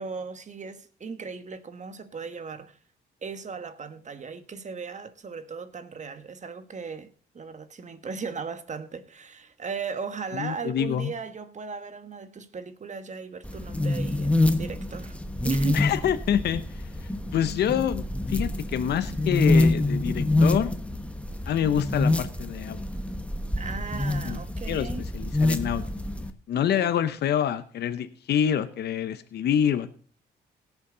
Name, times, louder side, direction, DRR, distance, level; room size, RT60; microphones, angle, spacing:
voice 1, 0.0-2.8 3.2-15.2 15.4-15.8 23.6-25.0 26.5-26.9, right 5 dB, 45° right, 1.3 m, -37 dB
voice 2, 10.3-11.1 15.7-20.7 21.5-22.8 24.2-24.4 24.7-25.9 26.5-29.9, left 9 dB, 70° left, 0.8 m, -27 dB
sound 1, 13.4-26.3, left 2 dB, 5° left, 1.2 m, -26 dB
17.5 x 7.2 x 3.9 m
cardioid pair, 70°, 18 cm